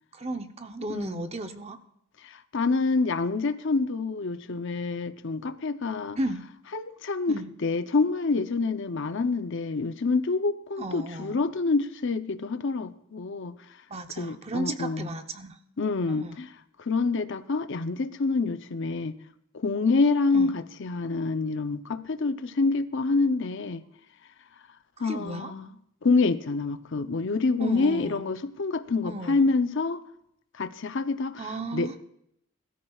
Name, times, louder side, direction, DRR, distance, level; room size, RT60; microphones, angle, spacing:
voice 1, 0.1-1.8 6.2-6.4 7.3-7.5 10.8-11.4 13.9-15.6 16.1-16.3 20.3-20.5 25.0-25.5 27.6-28.2 29.0-29.5 31.4-32.0, right 2 dB, 30° right, 8 dB, 0.8 m, -34 dB
voice 2, 0.9-1.2 2.2-6.2 6.7-13.6 14.2-15.1 15.8-16.5 16.8-19.2 19.5-23.8 25.0-25.7 26.0-30.0 30.5-31.5 31.7-31.9, left 3 dB, 55° left, 11 dB, 0.6 m, -27 dB
20.5 x 13.0 x 2.4 m, 0.74 s
head